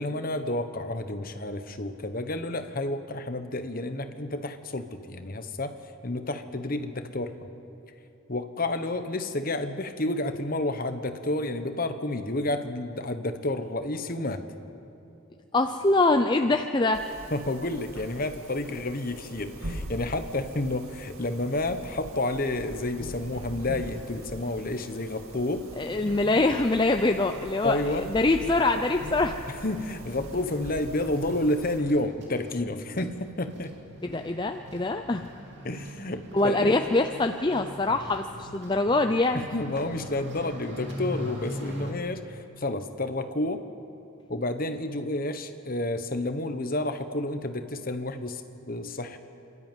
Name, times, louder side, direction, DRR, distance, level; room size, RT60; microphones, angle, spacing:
voice 1, 0.0-5.7 6.0-7.5 8.3-14.4 17.3-25.6 27.6-28.1 29.5-33.7 35.6-36.8 39.3-43.6 44.3-48.4 48.7-49.2, left 2 dB, 40° left, 8 dB, 1.1 m, -30 dB
voice 2, 15.5-17.0 25.8-29.4 34.1-35.2 36.3-39.4, left 2 dB, 20° left, 6 dB, 0.5 m, -24 dB
sound 1, 16.9-31.8, right 1 dB, 80° right, 2.3 m, -42 dB
sound 2, 25.8-41.9, equal, 55° right, 3.2 m, -43 dB
27.5 x 12.5 x 9.2 m, 2.8 s
head